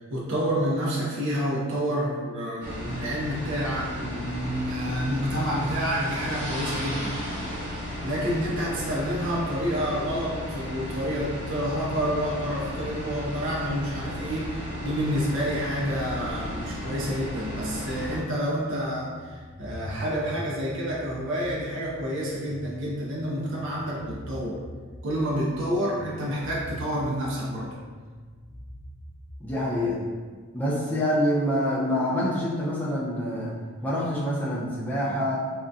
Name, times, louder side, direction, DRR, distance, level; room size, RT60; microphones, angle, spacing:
voice 1, 0.1-7.2 8.0-24.6 25.0-27.7, equal, 55° right, -5 dB, 0.5 m, -29 dB
sound 1, 2.6-18.2, left 1 dB, 90° right, 1.2 m, -34 dB
sound 2, 17.7-29.8, equal, 55° left, 0.8 m, -44 dB
voice 2, 29.4-30.0 30.5-33.5 33.8-35.4, equal, 5° left, -7 dB, 0.5 m, -26 dB
3.6 x 2.2 x 2.6 m, 1.5 s
head